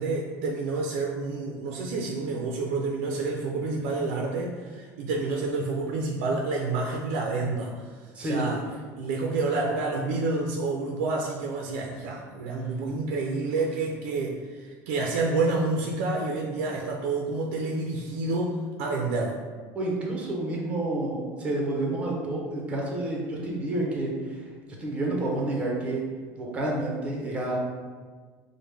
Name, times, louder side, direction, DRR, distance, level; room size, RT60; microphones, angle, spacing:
voice 1, 0.0-8.6 9.0-19.4, right 3 dB, 85° right, 0 dB, 0.4 m, -29 dB
voice 2, 19.7-24.4 24.8-26.0 26.4-27.6, right 2 dB, 15° right, -2 dB, 0.7 m, -29 dB
4.9 x 2.1 x 3.3 m, 1.5 s
cardioid pair, 160°, 7 cm